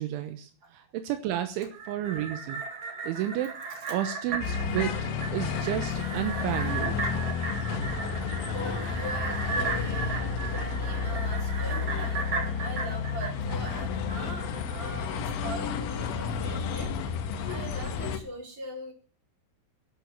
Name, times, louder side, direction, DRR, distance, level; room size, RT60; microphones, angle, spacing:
voice 1, 0.0-2.6 3.0-3.5 3.9-5.1 5.3-7.0, right 12 dB, 80° right, 8 dB, 3.4 m, -31 dB
sound 1, 1.6-14.2 14.5-14.6, right 4 dB, 40° right, 2.7 m, -36 dB
sound 2, 4.4-18.2, left 5 dB, 85° left, 4.0 m, -31 dB
voice 2, 8.5-12.3 12.6-16.9 17.4-18.9, right 1 dB, 25° right, 0 dB, 4.8 m, -41 dB
11.5 x 11.5 x 7.4 m, 0.40 s
omnidirectional pair, 5.5 m